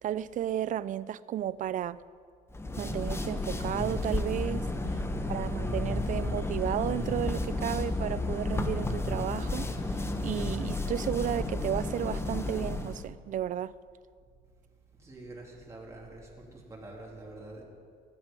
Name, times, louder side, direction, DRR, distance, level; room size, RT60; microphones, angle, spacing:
voice 1, 0.0-2.0 2.8-4.6 5.3-13.7, right 11 dB, 50° right, 18 dB, 0.4 m, -33 dB
sound 1, 2.5-13.0, left 2 dB, 15° left, 1.0 m, -32 dB
voice 2, 15.0-17.6, right 2 dB, 15° right, -3 dB, 3.1 m, -46 dB
16.0 x 11.5 x 5.4 m, 2.1 s
cardioid pair, 110°, 17 cm